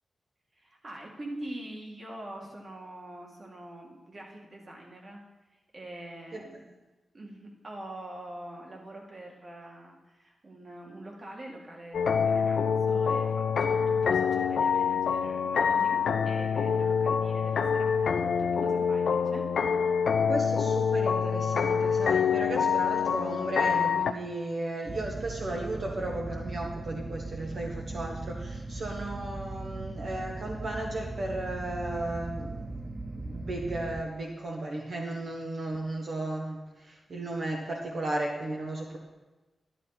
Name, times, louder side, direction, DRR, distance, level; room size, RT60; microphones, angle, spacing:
voice 1, 0.5-5.2 5.7-6.7 7.1-19.5, right 1 dB, 40° right, 0 dB, 2.2 m, -44 dB
sound 1, 11.9-24.1, left 6 dB, 85° left, 0.6 m, -26 dB
voice 2, 20.3-32.7 33.1-39.0, right 2 dB, 65° right, -1 dB, 1.5 m, -35 dB
sound 2, 24.9-34.0, right 2 dB, 25° right, 0.5 m, -38 dB
12.0 x 11.5 x 4.2 m, 1.1 s
wide cardioid pair, 125°, 0 cm